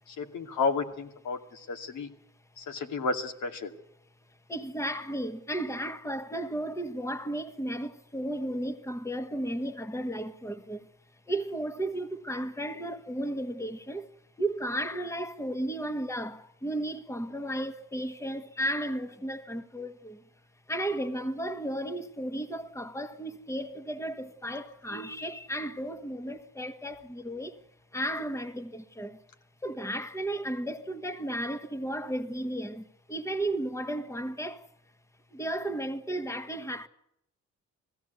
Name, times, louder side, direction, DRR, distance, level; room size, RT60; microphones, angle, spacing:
voice 1, 0.1-2.1 2.6-3.7, left 4 dB, 75° left, 2.4 m, -32 dB
voice 2, 4.5-10.9 11.3-14.1 14.4-20.2 20.7-27.6 27.9-29.2 29.6-34.7 35.3-36.9, right 1 dB, 10° left, 1.5 m, -34 dB
20.5 x 15.5 x 8.2 m
cardioid pair, 90°, 30 cm